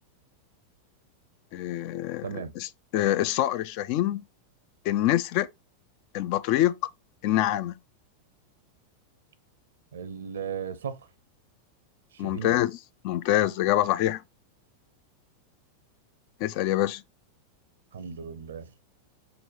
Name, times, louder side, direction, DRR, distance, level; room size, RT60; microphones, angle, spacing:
voice 1, 1.5-4.2 4.8-5.5 6.1-6.9 7.2-7.8 12.2-12.8 13.0-14.2 16.4-17.0, left 13 dB, 45° left, 0.4 m, -25 dB
voice 2, 2.2-2.5 9.9-11.1 12.1-12.6 17.9-18.7, right 7 dB, 65° right, 0.6 m, -36 dB
4.3 x 4.0 x 3.0 m
figure-of-eight pair, 90°, 0 cm